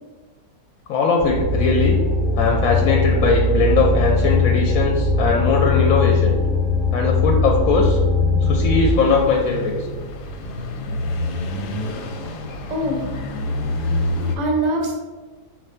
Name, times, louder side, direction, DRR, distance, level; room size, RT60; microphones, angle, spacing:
voice 1, 0.9-2.0 2.4-6.4 6.9-8.0 8.4-9.8, left 4 dB, 70° left, 0 dB, 0.9 m, -20 dB
sound 1, 1.2-8.9, left 3 dB, 50° left, 0.6 m, -20 dB
sound 2, 7.7-10.6, right 2 dB, 70° right, 0.9 m, -36 dB
sound 3, 8.9-14.4, left 1 dB, 90° left, 1.2 m, -27 dB
voice 2, 12.7-13.2 14.2-14.9, right 1 dB, 45° right, 0 dB, 0.6 m, -23 dB
4.5 x 2.5 x 4.2 m, 1.4 s
omnidirectional pair, 1.7 m